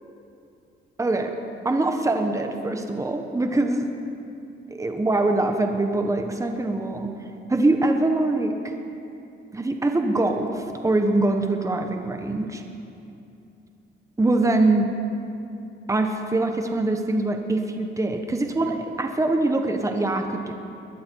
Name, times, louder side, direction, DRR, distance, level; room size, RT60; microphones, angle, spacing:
voice 1, 1.0-1.3 1.6-3.9 4.7-7.1 7.5-8.7 9.5-12.6 14.2-14.9 15.9-20.5, right 2 dB, 15° right, 5 dB, 1.2 m, -23 dB
22.0 x 11.5 x 4.7 m, 2.7 s
cardioid pair, 90°, 20 cm